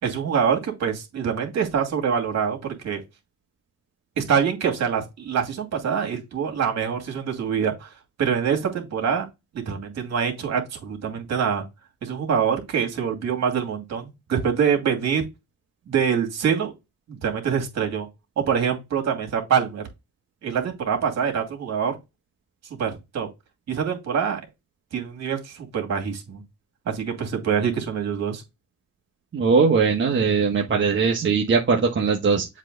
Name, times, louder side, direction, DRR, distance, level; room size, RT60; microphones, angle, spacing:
voice 1, 0.0-2.6 2.8-3.0 4.2-7.9 8.2-9.2 9.5-11.6 12.0-15.2 15.9-16.7 17.1-18.1 18.4-19.8 20.4-22.0 22.8-23.3 23.7-24.4 24.9-26.4 26.9-28.4, right 7 dB, 60° right, 2.5 m, -25 dB
voice 2, 29.3-32.5, right 5 dB, 40° right, 1.3 m, -20 dB
7.4 x 3.2 x 3.9 m
cardioid pair, 95°, 30 cm